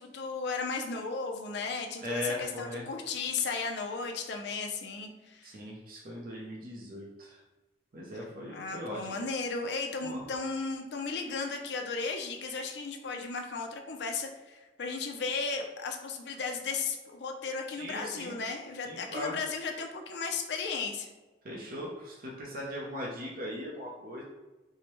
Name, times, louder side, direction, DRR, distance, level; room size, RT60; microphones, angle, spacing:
voice 1, 0.0-5.6 8.5-21.1, left 4 dB, 65° left, 3 dB, 0.5 m, -35 dB
voice 2, 2.0-2.9 5.4-7.4 7.9-9.0 10.0-10.2 17.8-18.4 18.9-19.4 21.4-24.2, left 1 dB, 50° right, -3 dB, 0.6 m, -39 dB
4.6 x 2.1 x 3.0 m, 1.1 s
head